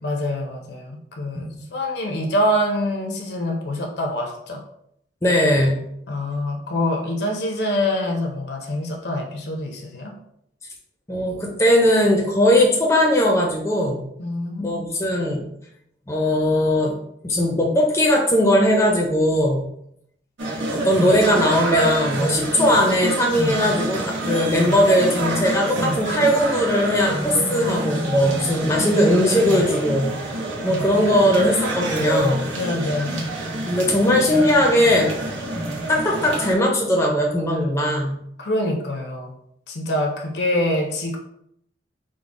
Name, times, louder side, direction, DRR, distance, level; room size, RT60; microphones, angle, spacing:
voice 1, 0.0-4.6 6.1-10.1 14.2-14.9 32.5-33.2 38.4-39.3 39.7-41.2, left 1 dB, 65° left, 2 dB, 0.6 m, -25 dB
voice 2, 5.2-5.8 11.1-14.0 14.6-15.4 16.1-16.9 17.2-19.7 20.7-30.1 30.6-32.5 33.6-35.1 35.9-38.2, left 1 dB, 15° left, -1 dB, 0.5 m, -19 dB
sound 1, 20.4-36.5, right 2 dB, 90° right, 0.9 m, -26 dB
3.7 x 2.1 x 3.6 m, 0.74 s
head